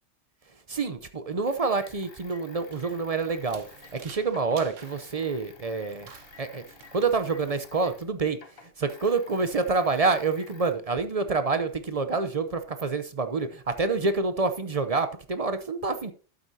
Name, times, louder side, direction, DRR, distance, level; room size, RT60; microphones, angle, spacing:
voice 1, 0.7-3.7 3.9-6.1 6.4-16.1, right 4 dB, 40° right, 0.6 m, -27 dB
sound 1, 1.4-8.1 8.3-10.7, left 5 dB, 55° left, 1.3 m, -52 dB
sound 2, 2.5-8.2, right 6 dB, 90° right, 1.4 m, -52 dB
12.0 x 7.9 x 2.7 m
omnidirectional pair, 1.3 m